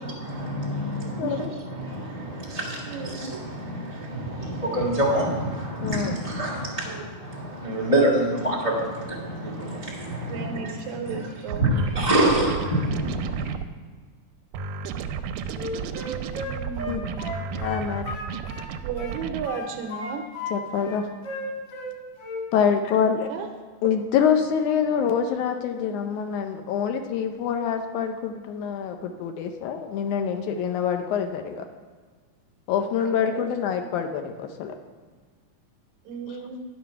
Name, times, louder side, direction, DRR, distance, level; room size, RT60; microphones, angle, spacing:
voice 1, 0.0-10.8 11.0-11.3 11.5-13.5, right 1 dB, 25° left, -4 dB, 0.8 m, -27 dB
voice 2, 2.9-3.2 10.2-11.7 16.5-17.3 18.8-20.3 23.3-23.5 32.8-33.5 36.1-36.6, right 6 dB, 75° right, 4 dB, 2.0 m, -34 dB
voice 3, 5.8-6.2 16.9-17.0 17.5-18.1 20.5-21.1 22.5-23.3 23.8-31.7 32.7-34.8 36.3-36.4, left 7 dB, 75° left, 6 dB, 2.0 m, -25 dB
sound 1, 11.5-13.7 14.5-19.5, right 6 dB, 90° right, 2.2 m, -32 dB
Wind instrument woodwind instrument, 15.5-18.7 19.0-20.6 20.8-21.9 22.2-22.5, left 1 dB, 45° left, 3.5 m, -34 dB
10.5 x 5.8 x 5.6 m, 1.5 s
omnidirectional pair, 3.7 m